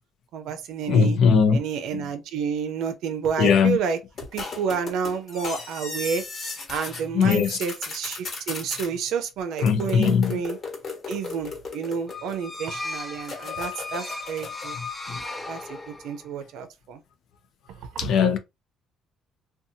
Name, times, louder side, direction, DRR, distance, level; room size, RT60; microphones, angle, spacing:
voice 1, 0.3-1.2 1.5-4.0 4.3-6.2 6.7-10.6 11.1-14.8 15.5-17.0 17.9-18.1, right 6 dB, 80° right, 0.5 m, -30 dB
voice 2, 0.9-1.6 1.9-2.0 3.4-3.8 7.1-7.6 9.6-10.4 18.0-18.4, left 6 dB, 60° left, 0.5 m, -19 dB
sound 1, 4.2-7.0 7.3-8.9 9.6-12.5 13.2-14.7, left 4 dB, 40° left, 1.3 m, -36 dB
sound 2, 12.1-16.2, left 3 dB, 15° left, 0.5 m, -36 dB
2.6 x 2.2 x 2.6 m
cardioid pair, 120°, 0 cm